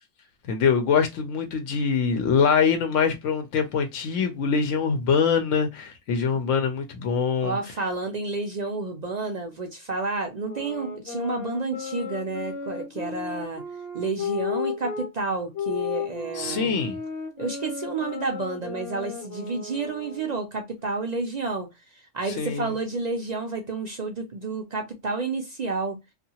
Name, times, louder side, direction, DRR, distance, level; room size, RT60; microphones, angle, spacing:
voice 1, 0.5-7.6 16.4-17.0 22.4-22.7, left 6 dB, 80° left, 0.9 m, -23 dB
voice 2, 7.4-13.6 13.9-16.8 17.4-26.0, right 3 dB, 55° right, 0.4 m, -30 dB
sound 1, 10.4-15.1 15.5-20.5, left 6 dB, 55° left, 0.9 m, -34 dB
2.7 x 2.4 x 2.7 m
omnidirectional pair, 1.2 m